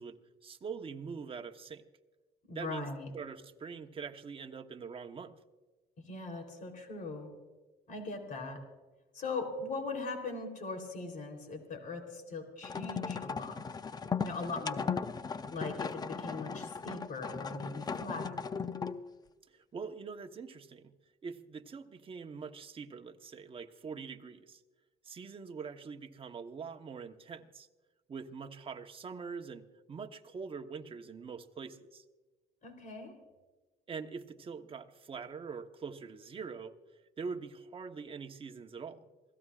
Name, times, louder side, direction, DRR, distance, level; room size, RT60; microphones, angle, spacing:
voice 1, 0.0-1.8 2.5-2.9 3.1-5.4 19.5-20.9 21.2-24.6 25.0-27.7 28.1-32.0 33.9-36.7 37.2-39.1, right 5 dB, 30° right, 5 dB, 1.1 m, -44 dB
voice 2, 2.5-3.1 6.1-7.3 7.9-8.6 9.1-13.5 14.2-14.9 15.5-18.5 32.6-33.1, left 3 dB, 50° left, 4 dB, 3.6 m, -40 dB
sound 1, 12.6-19.1, left 5 dB, 25° left, 0.6 m, -37 dB
27.5 x 17.0 x 2.5 m, 1.2 s
cardioid pair, 110°, 17 cm